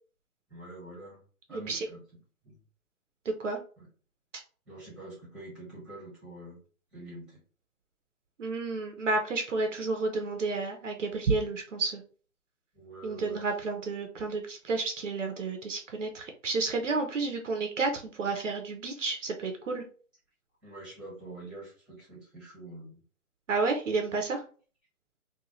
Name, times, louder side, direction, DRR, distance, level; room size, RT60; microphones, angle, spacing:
voice 1, 0.5-1.2 1.5-2.0 2.4-2.6 3.8-3.9 4.7-6.6 6.9-7.4 12.7-13.4 20.6-23.0, right 2 dB, ahead, -6 dB, 1.3 m, -45 dB
voice 2, 1.5-1.9 3.2-3.6 8.4-12.0 13.0-19.8 23.5-24.4, right 3 dB, 55° right, 4 dB, 0.8 m, -31 dB
3.1 x 2.4 x 3.7 m, 0.40 s
hypercardioid pair, 150°, 44 cm